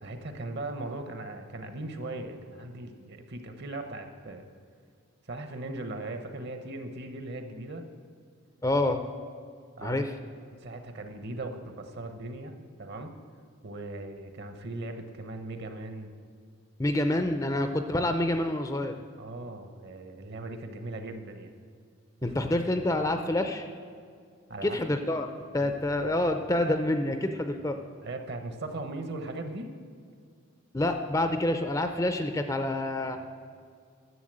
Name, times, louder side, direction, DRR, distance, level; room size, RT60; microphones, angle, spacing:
voice 1, 0.0-4.5 5.3-7.8 9.8-10.0 10.6-12.5 12.8-13.1 13.6-16.1 19.2-21.5 22.2-22.3 24.5-24.8 25.6-25.7 28.0-29.7, right 2 dB, 50° right, 7 dB, 0.9 m, -38 dB
voice 2, 8.6-9.0 9.8-10.1 16.8-19.0 22.2-23.7 24.6-27.8 30.7-33.2, left 1 dB, 15° left, 7 dB, 0.5 m, -27 dB
11.0 x 7.2 x 7.5 m, 2.2 s
head